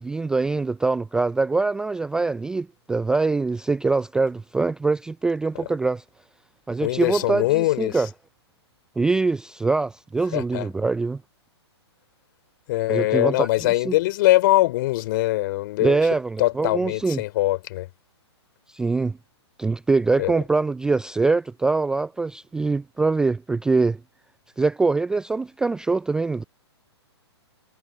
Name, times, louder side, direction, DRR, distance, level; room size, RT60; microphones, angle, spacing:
voice 1, 0.0-6.0 6.7-8.1 9.0-11.2 12.9-13.9 15.8-17.2 18.7-19.2 19.6-24.0 24.6-26.4, right 3 dB, 5° right, 0.3 m, -23 dB
voice 2, 6.8-8.0 10.3-10.7 12.7-16.1 16.4-17.9 20.2-20.3, left 18 dB, 45° left, 3.3 m, -22 dB
hypercardioid pair, 125°, 14 cm